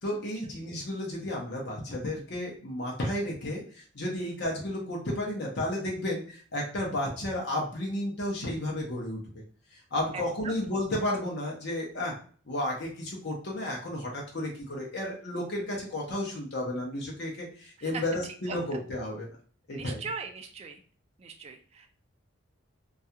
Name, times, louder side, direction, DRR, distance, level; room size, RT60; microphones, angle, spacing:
voice 1, 0.0-9.2 9.7-12.1 12.5-19.3 19.7-20.0, left 1 dB, 55° left, -2 dB, 0.7 m, -32 dB
voice 2, 10.1-10.6 17.8-18.0 18.4-18.6 19.7-20.8 21.2-21.9, right 5 dB, 30° right, 4 dB, 0.3 m, -40 dB
2.3 x 2.2 x 2.7 m, 0.43 s
head